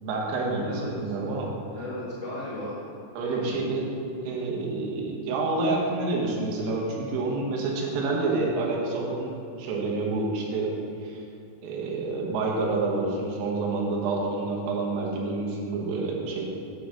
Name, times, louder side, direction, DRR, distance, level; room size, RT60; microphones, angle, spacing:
voice 1, 0.0-1.5 3.2-3.9 4.2-9.3 9.6-10.7 11.0-11.2 11.6-16.5, right 3 dB, 90° right, -2 dB, 3.9 m, -28 dB
voice 2, 0.6-1.1 1.7-2.8 3.2-3.6, left 1 dB, 50° left, -12 dB, 2.9 m, -36 dB
9.3 x 3.8 x 7.2 m, 2.5 s
omnidirectional pair, 5.7 m